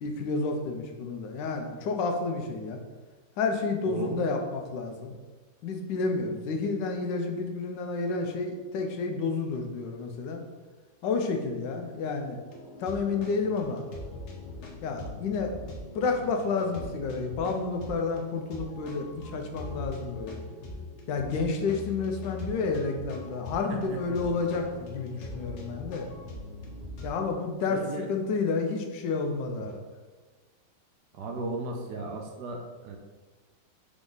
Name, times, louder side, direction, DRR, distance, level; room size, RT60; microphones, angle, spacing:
voice 1, 0.0-2.8 3.4-5.1 5.6-10.4 11.0-12.4 12.8-13.8 14.8-15.5 15.9-20.4 21.1-26.1 27.0-27.8 28.1-29.8, left 4 dB, 85° left, 3 dB, 1.3 m, -30 dB
voice 2, 3.9-4.2 23.7-24.2 27.7-28.1 29.6-29.7 31.1-33.0, right 3 dB, 70° right, 2 dB, 1.1 m, -36 dB
sound 1, 12.4-27.2, left 2 dB, 55° left, 0.8 m, -42 dB
3.8 x 3.5 x 3.8 m, 1.3 s
omnidirectional pair, 1.9 m